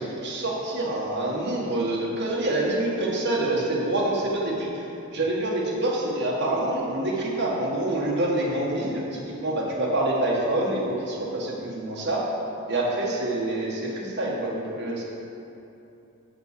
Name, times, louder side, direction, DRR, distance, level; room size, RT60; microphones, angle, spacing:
voice 1, 0.0-4.8 5.1-12.2 12.7-15.0, right 1 dB, 55° right, -4 dB, 1.7 m, -26 dB
7.0 x 5.9 x 6.8 m, 2.8 s
head